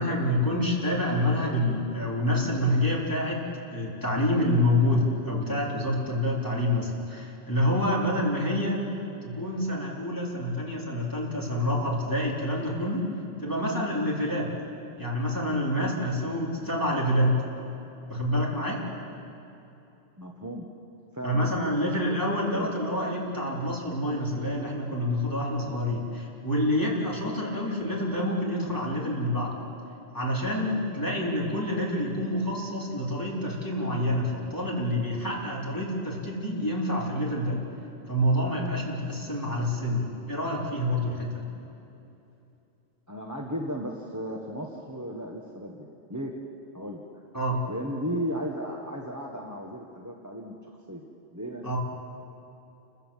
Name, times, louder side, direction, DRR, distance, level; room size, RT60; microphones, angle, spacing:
voice 1, 0.0-3.4 3.7-8.8 9.2-13.1 13.4-14.5 15.0-17.4 18.1-18.8 21.2-29.5 30.1-37.6 38.1-41.4 47.3-47.6 51.6-51.8, left 1 dB, 15° left, -5 dB, 4.1 m, -27 dB
voice 2, 20.2-20.8 21.1-21.6 22.4-22.8 43.1-46.4 46.7-47.1 47.7-50.6 50.9-51.1 51.3-51.8, equal, 15° right, -1 dB, 1.3 m, -35 dB
29.0 x 15.5 x 7.4 m, 2.8 s
omnidirectional pair, 1.2 m